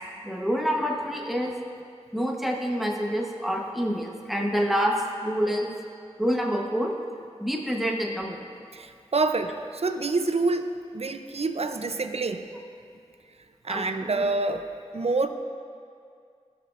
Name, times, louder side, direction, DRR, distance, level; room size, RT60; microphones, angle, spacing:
voice 1, 0.2-1.5 2.1-5.7 6.2-6.9 7.4-8.5 13.7-14.2, equal, ahead, -1 dB, 1.1 m, -27 dB
voice 2, 8.7-10.7 10.9-12.5 13.6-14.7 14.9-15.3, right 3 dB, 60° right, 7 dB, 0.6 m, -27 dB
16.5 x 6.0 x 2.5 m, 2.3 s
wide cardioid pair, 45°, 12 cm